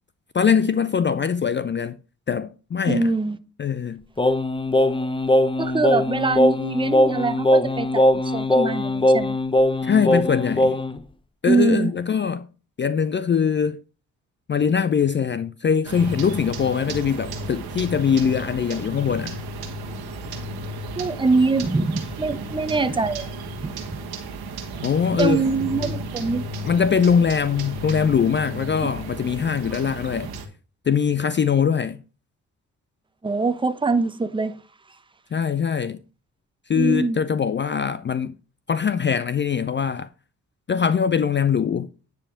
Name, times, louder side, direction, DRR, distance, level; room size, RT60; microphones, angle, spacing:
voice 1, 0.3-2.0 2.3-3.1 3.6-4.0 9.8-10.8 11.4-12.5 12.8-13.8 14.5-19.4 24.8-25.4 26.6-30.3 30.9-32.0 35.3-36.0 36.7-38.4 38.7-40.1 40.7-41.9, left 7 dB, 30° left, 0.5 m, -22 dB
voice 2, 2.9-3.4 5.6-9.4 11.5-11.9 21.0-23.3 23.6-24.0 25.2-26.5 28.8-28.9 30.2-30.3 33.2-34.6 36.7-37.2, right 3 dB, 15° right, 0.8 m, -23 dB
Singing, 4.2-11.0, left 1 dB, 15° left, 0.8 m, -20 dB
sound 1, 15.8-30.5, right 1 dB, 75° right, 1.4 m, -33 dB
9.8 x 3.4 x 5.6 m
hypercardioid pair, 45°, 38 cm